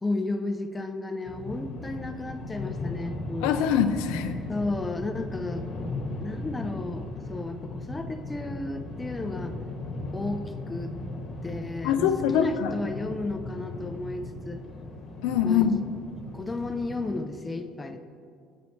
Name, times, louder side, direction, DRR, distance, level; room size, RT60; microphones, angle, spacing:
voice 1, 0.0-3.6 4.5-5.7 6.2-9.6 10.1-10.9 11.4-12.1 12.3-14.6 15.4-15.7 16.3-18.0, left 2 dB, 20° left, 7 dB, 0.5 m, -33 dB
sound 1, 1.2-17.3, left 2 dB, 60° left, 1.1 m, -37 dB
voice 2, 3.4-4.4 11.8-12.7 15.2-15.8, left 8 dB, 80° left, 8 dB, 0.3 m, -24 dB
8.4 x 3.1 x 4.2 m, 2.3 s
supercardioid pair, 85°, 0 cm